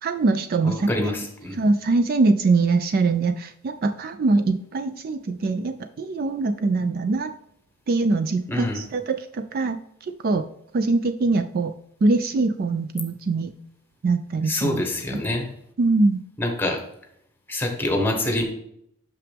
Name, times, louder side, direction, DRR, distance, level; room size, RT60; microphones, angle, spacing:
voice 1, 0.0-1.2 1.5-7.3 7.9-10.5 10.7-11.7 12.0-13.5 14.0-14.8 15.1-15.2 15.8-16.2, right 3 dB, 45° right, 9 dB, 0.3 m, -23 dB
voice 2, 0.6-1.6 8.5-8.8 14.5-15.5 16.4-16.8 17.5-18.4, left 1 dB, 10° left, 3 dB, 1.2 m, -25 dB
6.1 x 5.8 x 3.4 m, 0.73 s
head